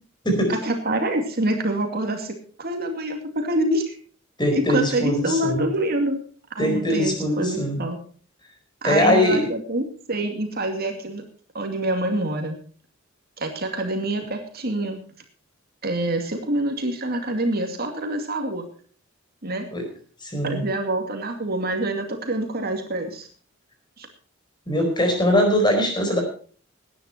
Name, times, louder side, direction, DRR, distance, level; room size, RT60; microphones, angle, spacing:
voice 1, 0.5-4.0 4.5-6.2 6.5-8.0 8.8-11.2 11.5-12.6 13.4-15.0 15.8-18.7 19.4-19.7 20.4-23.3 24.0-24.1, right 1 dB, 50° right, 4 dB, 2.4 m, -26 dB
voice 2, 4.4-5.7 6.6-7.8 8.8-9.4 19.7-19.8 20.2-20.6 24.7-26.2, left 1 dB, 20° left, 3 dB, 4.6 m, -21 dB
18.0 x 10.5 x 4.4 m, 0.43 s
head